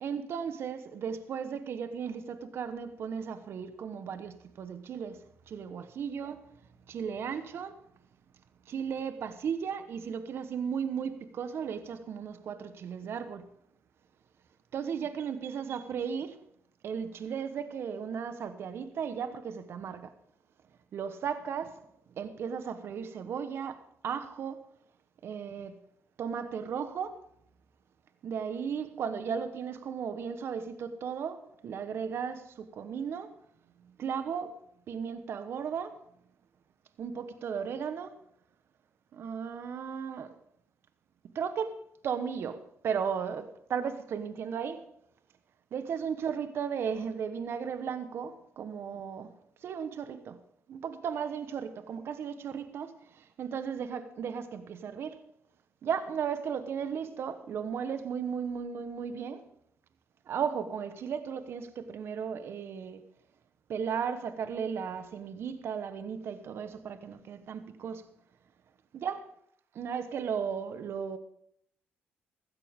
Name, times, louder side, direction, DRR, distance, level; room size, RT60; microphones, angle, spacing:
voice 1, 0.0-6.4 6.9-7.8 8.7-13.5 14.7-16.4 16.8-20.1 20.9-21.8 22.2-24.6 25.2-25.8 26.2-27.2 28.2-33.3 34.0-34.6 34.9-36.0 37.0-38.1 39.1-40.4 41.3-41.8 42.0-44.8 45.7-49.3 49.6-50.4 50.7-55.2 55.8-59.4 60.3-63.0 63.7-68.0 68.9-69.2 69.7-71.2, right 7 dB, 65° right, 1.1 m, -35 dB
15.5 x 13.5 x 3.6 m
supercardioid pair, 70°, 5 cm